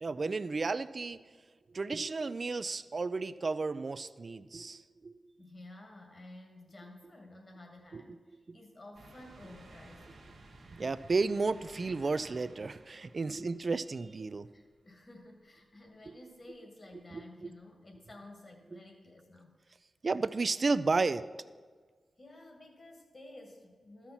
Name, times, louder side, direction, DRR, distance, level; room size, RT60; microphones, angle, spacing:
voice 1, 0.0-1.3 1.7-5.1 7.9-8.2 8.5-8.6 10.7-14.5 16.1-16.2 17.1-17.5 18.7-18.8 20.0-21.3, right 3 dB, 55° right, 14 dB, 0.4 m, -33 dB
voice 2, 5.4-10.0 13.2-13.6 14.5-19.5 22.2-24.1, left 2 dB, 50° left, 2 dB, 2.2 m, -53 dB
sound 1, 8.9-14.5 15.0-15.1 16.4-16.5, right 2 dB, 90° right, 1.3 m, -56 dB
13.0 x 5.7 x 4.4 m, 1.5 s
cardioid pair, 40°, 0 cm